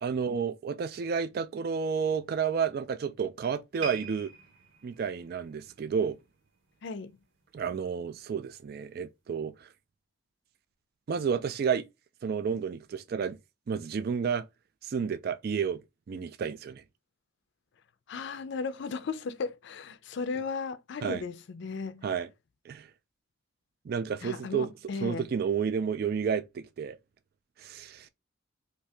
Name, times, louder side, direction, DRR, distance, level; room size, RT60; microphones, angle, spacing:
voice 1, 0.0-4.3 4.8-6.2 7.5-9.7 11.1-11.9 12.2-13.4 13.7-14.5 14.8-15.8 16.1-16.8 21.0-21.2 22.0-22.3 22.7-22.9 23.9-24.7 25.0-27.0 27.6-28.1, right 6 dB, 50° right, 0.3 m, -31 dB
sound 1, 3.8-7.1 7.4-7.7 8.3-8.4, right 5 dB, 75° right, 1.1 m, -44 dB
voice 2, 6.8-7.2 18.1-22.1 24.2-25.2, left 4 dB, 60° left, 0.4 m, -36 dB
2.8 x 2.7 x 3.3 m
head